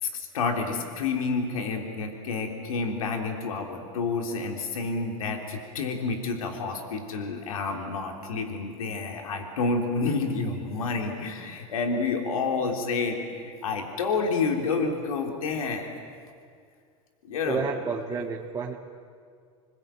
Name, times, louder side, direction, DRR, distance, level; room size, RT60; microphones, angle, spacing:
voice 1, 0.0-15.9 17.2-17.7, left 4 dB, 85° left, 3 dB, 3.5 m, -29 dB
voice 2, 17.4-18.7, right 5 dB, 20° right, -3 dB, 2.1 m, -30 dB
26.5 x 20.5 x 9.1 m, 2.2 s
hypercardioid pair, 100°, 18 cm